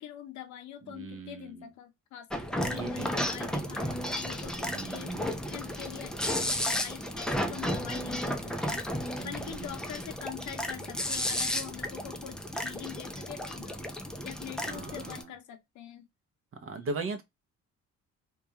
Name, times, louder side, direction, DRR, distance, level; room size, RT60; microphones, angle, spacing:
voice 1, 0.0-5.1 5.5-8.8 9.2-13.9 14.2-16.1, left 11 dB, 70° left, 0.6 m, -44 dB
voice 2, 0.9-1.7 2.7-3.1 4.7-5.4 7.4-7.8 9.2-9.7 14.6-15.2 16.6-17.2, right 3 dB, 45° right, 0.6 m, -39 dB
sound 1, 2.3-15.2, equal, ahead, 0.4 m, -33 dB
2.3 x 2.3 x 2.8 m
cardioid pair, 90°, 30 cm